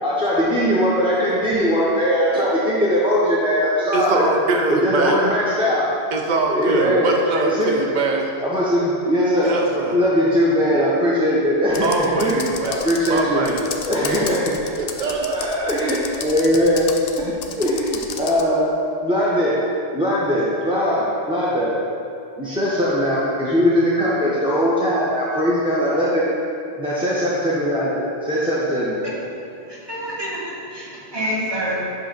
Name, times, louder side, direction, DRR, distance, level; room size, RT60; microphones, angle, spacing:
voice 1, 0.0-4.3 4.7-5.9 6.5-7.2 7.4-7.9 8.4-9.5 9.9-13.4 13.8-14.7 15.0-16.9 17.2-18.7 19.0-19.6 19.9-21.7 22.4-26.2 26.8-29.0, equal, 5° right, -8 dB, 0.6 m, -20 dB
voice 2, 3.9-5.2 6.1-8.3 9.4-10.0 11.8-13.7 14.8-15.5, right 3 dB, 50° right, 1 dB, 0.7 m, -23 dB
Computer keyboard, 11.7-18.5, left 6 dB, 65° left, 0.7 m, -33 dB
voice 3, 29.7-31.9, equal, 25° right, -7 dB, 1.4 m, -27 dB
7.7 x 2.6 x 5.8 m, 2.6 s
omnidirectional pair, 1.0 m